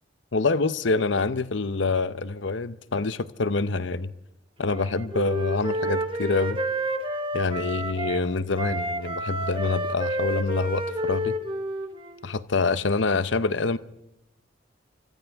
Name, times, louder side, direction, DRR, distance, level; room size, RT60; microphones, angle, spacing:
voice 1, 0.3-4.1 4.6-6.6 7.3-11.4 12.2-13.8, left 3 dB, 70° left, 0.8 m, -26 dB
Wind instrument woodwind instrument, 4.6-8.2 8.6-12.3, right 1 dB, 25° right, 2.1 m, -30 dB
29.5 x 25.5 x 3.6 m
head